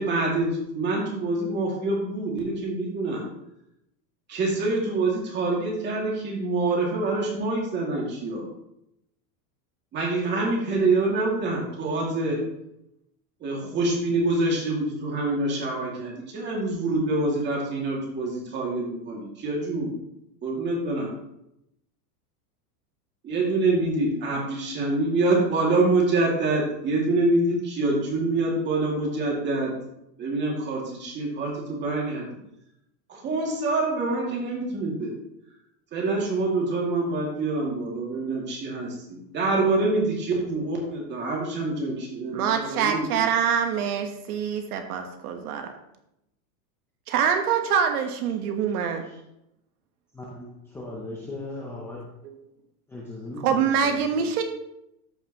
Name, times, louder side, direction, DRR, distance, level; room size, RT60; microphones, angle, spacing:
voice 1, 0.0-3.2 4.3-8.5 9.9-12.4 13.4-19.9 20.4-21.1 23.2-29.7 30.2-32.3 33.1-35.1 35.9-43.2, right 2 dB, 20° right, -2 dB, 2.3 m, -26 dB
voice 2, 42.3-45.7 47.1-49.0 52.2-52.3 53.4-54.4, right 7 dB, 65° right, 5 dB, 1.3 m, -25 dB
voice 3, 50.1-52.0 52.9-54.4, left 2 dB, 5° left, -4 dB, 0.6 m, -38 dB
13.5 x 5.6 x 3.0 m, 0.82 s
supercardioid pair, 165°, 48 cm